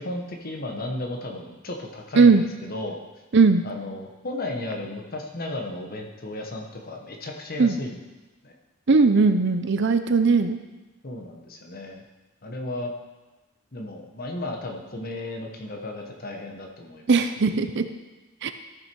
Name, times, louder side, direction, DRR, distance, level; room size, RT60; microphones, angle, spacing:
voice 1, 0.0-3.0 3.6-8.0 8.4-8.5 11.0-12.0 12.4-12.9 13.7-17.1, left 1 dB, 45° left, 2 dB, 1.2 m, -34 dB
voice 2, 3.3-3.6 7.6-7.8 8.9-10.6 17.1-17.8 18.4-18.5, right 4 dB, 55° right, 9 dB, 0.6 m, -18 dB
13.5 x 6.0 x 4.6 m, 1.1 s
head